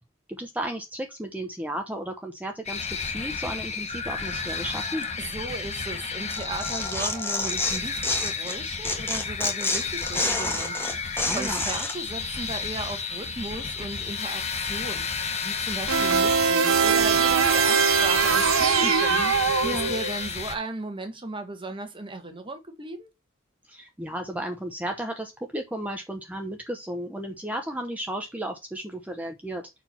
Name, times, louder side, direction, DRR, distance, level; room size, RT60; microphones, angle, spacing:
voice 1, 0.3-5.1 11.3-11.6 18.8-19.3 19.6-19.9 23.7-29.7, right 1 dB, 10° right, 0.9 m, -34 dB
sound 1, 2.7-20.6, left 5 dB, 35° left, 1.2 m, -32 dB
voice 2, 5.2-23.1, right 2 dB, 25° right, 1.5 m, -36 dB
Tearing, 6.3-8.6 8.8-11.9, left 2 dB, 10° left, 1.5 m, -28 dB
sound 2, 15.9-20.2, right 6 dB, 80° right, 0.9 m, -22 dB
5.7 x 4.6 x 5.5 m
head